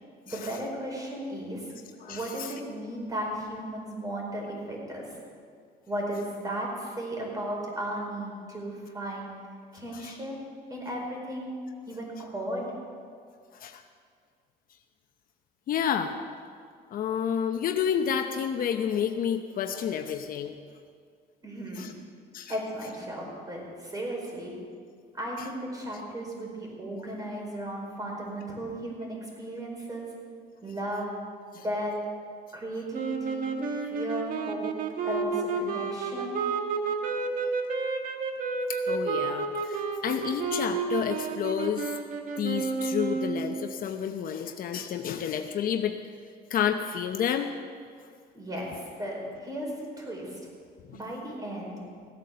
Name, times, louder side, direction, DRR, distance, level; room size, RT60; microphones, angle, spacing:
voice 1, 0.2-1.7 2.0-5.2 5.9-9.3 9.7-10.4 10.7-11.5 11.9-12.7 21.4-21.9 22.5-24.5 25.1-30.1 30.6-31.1 31.6-32.0 32.5-33.5 33.7-34.7 35.1-36.4 48.3-50.4 50.9-51.8, right 1 dB, 20° right, -1 dB, 4.7 m, -35 dB
voice 2, 2.0-2.5 9.9-10.1 13.5-13.8 15.7-16.2 16.9-20.5 21.8-21.9 22.3-22.5 31.5-31.6 37.4-37.5 38.7-42.0 42.4-46.0 46.5-47.5 50.9-51.0, left 8 dB, 55° left, 6 dB, 0.8 m, -30 dB
sound 1, 32.9-43.7, right 4 dB, 55° right, 1.5 m, -31 dB
17.0 x 9.0 x 6.7 m, 2.1 s
cardioid pair, 110°, 17 cm